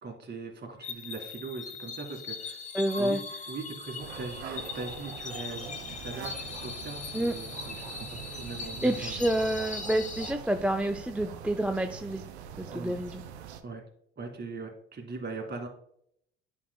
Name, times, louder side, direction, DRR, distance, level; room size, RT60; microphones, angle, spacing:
voice 1, 0.0-2.7 3.0-3.2 3.5-9.3 12.7-13.0 13.6-13.8 14.2-15.7, right 3 dB, 30° right, 2 dB, 2.0 m, -40 dB
sound 1, 0.8-10.3, left 4 dB, 25° left, 1.0 m, -40 dB
voice 2, 2.7-3.2 7.1-7.3 8.8-12.2 12.6-13.2, right 1 dB, 5° right, 6 dB, 0.4 m, -28 dB
sound 2, 4.0-13.6, right 7 dB, 85° right, 0.6 m, -44 dB
sound 3, 5.8-11.9, right 5 dB, 55° right, 1.4 m, -49 dB
9.9 x 5.3 x 2.2 m, 0.71 s
hypercardioid pair, 60°, 32 cm